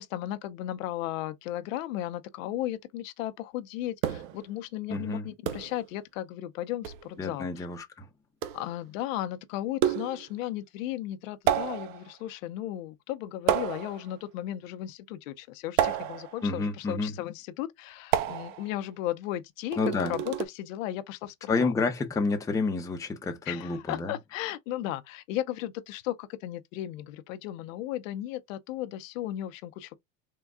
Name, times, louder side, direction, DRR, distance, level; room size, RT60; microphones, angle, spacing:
voice 1, 0.0-7.7 8.5-21.7 23.5-30.0, left 13 dB, 65° left, 0.6 m, -35 dB
sound 1, 4.0-4.5 5.5-5.8 6.8-7.1 8.4-8.7 9.8-10.3 11.5-12.1 13.5-14.1 15.8-16.4 18.1-18.7 19.7-20.5, right 11 dB, 55° right, 0.6 m, -29 dB
voice 2, 4.9-5.3 7.2-8.1 16.4-17.1 19.8-20.1 21.5-24.1, left 3 dB, 10° left, 0.6 m, -29 dB
3.6 x 2.2 x 3.5 m
supercardioid pair, 125°, 43 cm